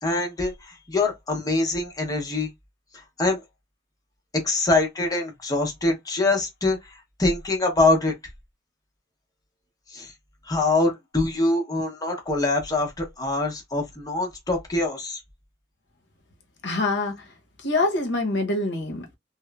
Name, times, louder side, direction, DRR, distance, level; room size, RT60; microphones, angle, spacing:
voice 1, 0.0-2.5 2.9-3.4 4.4-8.1 9.9-10.1 10.4-15.2, left 2 dB, 20° left, 0.7 m, -24 dB
voice 2, 16.6-17.1 17.6-19.2, left 2 dB, 70° left, 0.7 m, -25 dB
2.9 x 2.0 x 2.2 m
head